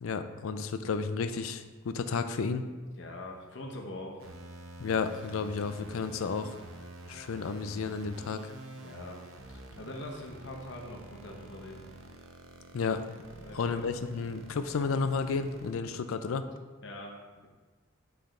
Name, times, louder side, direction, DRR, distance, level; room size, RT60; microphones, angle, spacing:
voice 1, 0.0-2.6 4.8-6.6 7.1-8.5 12.7-13.1 13.5-16.5, left 5 dB, 85° left, 9 dB, 0.4 m, -32 dB
voice 2, 3.0-4.2 8.8-9.2 9.5-11.9 13.4-13.8 16.8-17.5, left 1 dB, 60° left, 0 dB, 0.8 m, -43 dB
sound 1, 4.2-15.7, right 2 dB, 80° right, 0.7 m, -48 dB
8.0 x 3.4 x 3.7 m, 1.3 s
head